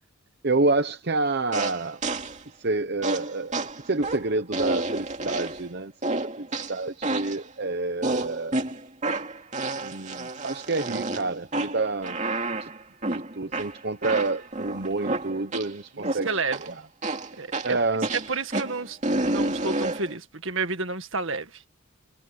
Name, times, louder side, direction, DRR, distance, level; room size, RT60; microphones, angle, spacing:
voice 1, 0.4-2.0 2.6-5.9 6.4-8.6 9.8-12.2 12.6-12.7 13.1-16.3 16.7-16.8 17.6-18.1, right 3 dB, 50° right, 0.9 m, -28 dB
sound 1, 1.5-2.4 3.0-5.7 6.0-7.4 8.0-15.7 16.0-16.7 17.0-20.1, right 2 dB, 35° right, 2.6 m, -30 dB
voice 2, 15.9-16.8 17.0-17.8 18.3-19.0 19.2-21.7, right 3 dB, 65° right, 1.9 m, -31 dB
head